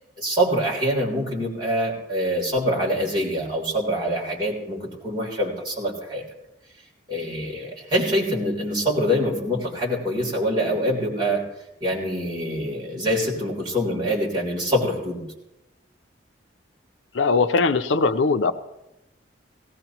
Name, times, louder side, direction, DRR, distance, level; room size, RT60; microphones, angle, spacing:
voice 1, 0.2-6.2 7.1-11.5 11.8-15.2, equal, 25° right, -4 dB, 3.4 m, -25 dB
voice 2, 17.1-18.5, left 4 dB, 80° left, 10 dB, 0.6 m, -20 dB
18.0 x 17.5 x 3.0 m, 0.93 s
head